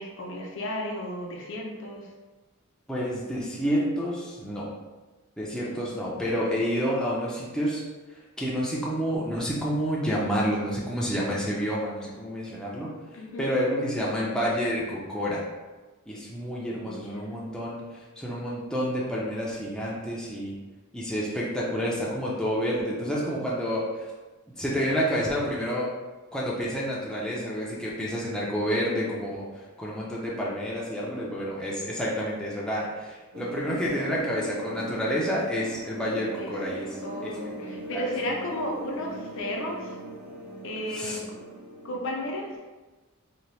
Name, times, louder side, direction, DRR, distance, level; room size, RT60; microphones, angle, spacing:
voice 1, 0.0-2.1 13.1-13.5 16.8-17.4 27.3-27.5 28.7-28.9 34.8-35.0 36.4-36.5 37.0-39.9 40.6-41.4 41.8-42.5, left 1 dB, 60° left, 0 dB, 0.5 m, -34 dB
voice 2, 2.9-4.7 5.4-7.8 8.4-12.9 13.4-15.4 16.1-20.5 20.9-24.1 24.6-25.9 26.3-37.3 37.9-38.0 40.9-41.2, equal, 5° left, -6 dB, 0.4 m, -29 dB
sound 1, 33.3-42.6, right 1 dB, 60° right, 0.7 m, -39 dB
2.8 x 2.2 x 3.1 m, 1.2 s
head